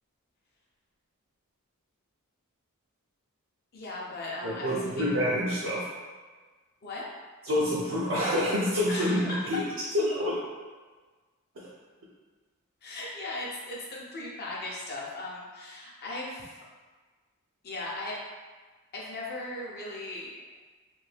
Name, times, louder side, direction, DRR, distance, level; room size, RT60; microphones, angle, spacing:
voice 1, 3.7-5.1 6.8-7.1 8.9-9.7 12.8-16.5 17.6-18.2 18.9-20.4, left 2 dB, 45° left, -4 dB, 0.7 m, -37 dB
voice 2, 4.4-5.9 7.5-9.7 9.9-10.4 11.6-11.7, left 1 dB, 60° right, -7 dB, 0.6 m, -27 dB
2.7 x 2.6 x 3.3 m, 1.4 s
head